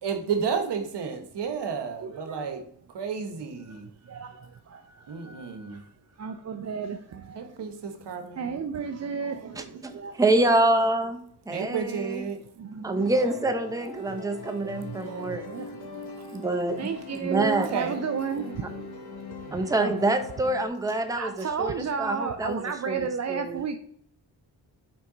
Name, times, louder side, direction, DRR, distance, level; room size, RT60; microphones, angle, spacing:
voice 1, 0.0-2.6 2.9-3.9 5.1-5.8 7.3-8.7 11.5-12.4 17.6-18.0 19.5-19.7, right 6 dB, 65° right, 1.1 m, -32 dB
voice 2, 2.0-2.5 3.6-5.9 6.2-7.6 8.4-10.2 12.6-13.4 14.6-16.5 16.8-20.1 21.2-23.8, right 6 dB, 40° right, 0.5 m, -34 dB
voice 3, 9.6-12.2 12.8-15.4 16.3-16.9 17.2-17.7 19.5-23.6, right 2 dB, 10° right, 0.8 m, -26 dB
sound 1, 12.9-20.7, left 4 dB, 60° left, 1.2 m, -42 dB
5.8 x 4.6 x 3.8 m
cardioid pair, 75°, 43 cm